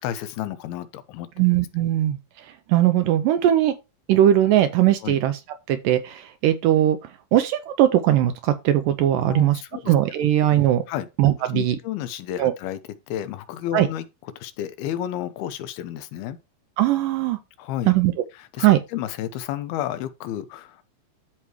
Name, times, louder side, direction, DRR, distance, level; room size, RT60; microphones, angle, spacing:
voice 1, 0.0-1.4 5.0-5.2 9.2-9.9 10.9-11.1 11.4-12.8 13.1-16.4 17.6-17.9 18.3-20.8, left 11 dB, 90° left, 2.7 m, -31 dB
voice 2, 1.4-3.7 4.1-5.4 5.7-7.0 7.3-10.8 11.2-11.8 12.4-12.5 13.7-13.9 16.8-17.4 17.9-18.1 18.6-18.8, right 12 dB, 80° right, 2.0 m, -20 dB
13.5 x 4.7 x 3.1 m
omnidirectional pair, 4.4 m